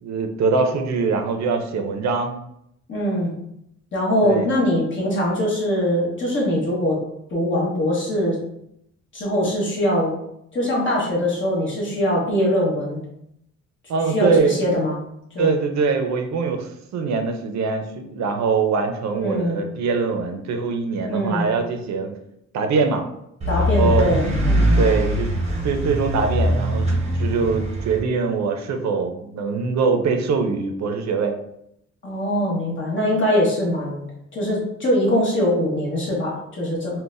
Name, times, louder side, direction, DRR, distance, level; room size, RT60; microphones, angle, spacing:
voice 1, 0.0-2.3 4.2-4.5 13.9-14.6 15.4-22.1 22.5-23.0 23.5-24.1 24.8-25.3 25.6-31.3, right 4 dB, 65° right, 5 dB, 0.5 m, -23 dB
voice 2, 2.9-3.3 3.9-7.0 7.3-8.4 9.1-10.1 10.5-13.0 14.1-15.0 15.3-15.6 19.2-19.6 21.0-21.5 23.5-24.8 32.0-34.0 34.3-37.0, equal, 40° left, -4 dB, 1.2 m, -22 dB
sound 1, 23.4-28.0, equal, 20° right, 0.7 m, -21 dB
3.9 x 2.2 x 2.5 m, 0.76 s
wide cardioid pair, 140°, 29 cm